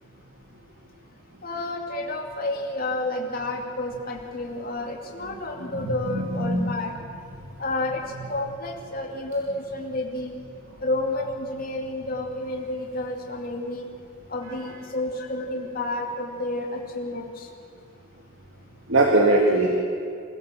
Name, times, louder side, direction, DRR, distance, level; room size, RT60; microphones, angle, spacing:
voice 1, 1.4-6.9 7.6-10.4 10.8-13.9 14.3-17.5, left 2 dB, 45° left, 0 dB, 2.5 m, -30 dB
voice 2, 5.7-6.6 18.9-19.7, right 2 dB, 80° right, 0 dB, 2.3 m, -21 dB
28.5 x 16.0 x 7.6 m, 2.4 s
head